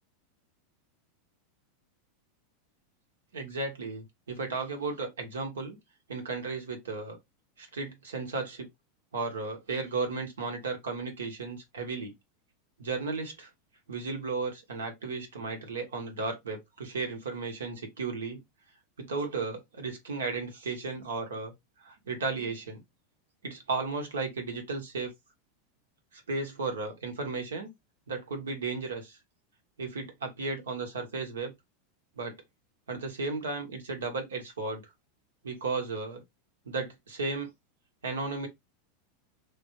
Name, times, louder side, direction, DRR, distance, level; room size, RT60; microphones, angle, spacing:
voice 1, 3.3-5.8 6.1-7.2 7.6-8.7 9.1-12.1 12.8-13.5 13.9-18.4 19.0-21.5 21.8-22.8 23.4-25.1 26.1-27.7 28.1-29.2 29.8-31.5 32.2-32.4 32.9-34.8 35.4-36.2 36.7-37.5 38.0-38.5, right 4 dB, 80° right, 1.1 m, -34 dB
3.3 x 2.7 x 2.8 m
hypercardioid pair, 90°, 0 cm